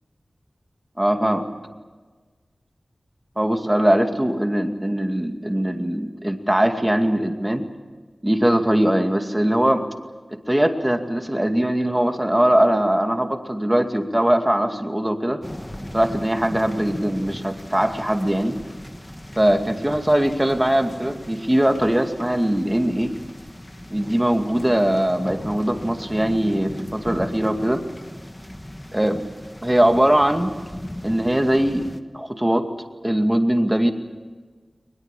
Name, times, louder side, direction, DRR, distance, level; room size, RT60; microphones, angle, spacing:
voice 1, 1.0-1.5 3.4-7.7 8.2-9.9 10.5-15.4 15.9-18.6 19.4-23.2 23.9-27.8 28.9-29.2 29.6-30.5 31.0-31.9 32.1-32.7 33.0-33.9, right 1 dB, 15° right, 5 dB, 2.3 m, -21 dB
sound 1, 15.4-32.0, left 1 dB, 20° left, 1.4 m, -38 dB
22.0 x 21.0 x 8.4 m, 1.4 s
wide cardioid pair, 60°, 0 cm